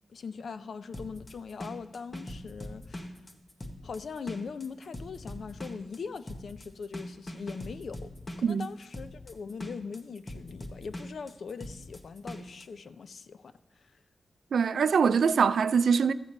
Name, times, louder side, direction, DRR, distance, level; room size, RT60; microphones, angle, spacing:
voice 1, 0.1-3.2 3.8-8.1 8.4-13.9, left 5 dB, 70° left, 0.5 m, -41 dB
sound 1, 0.9-12.6, left 1 dB, 25° left, 0.9 m, -42 dB
voice 2, 14.5-16.1, right 6 dB, 85° right, 0.3 m, -23 dB
13.5 x 7.9 x 4.2 m
wide cardioid pair, 170°, 0 cm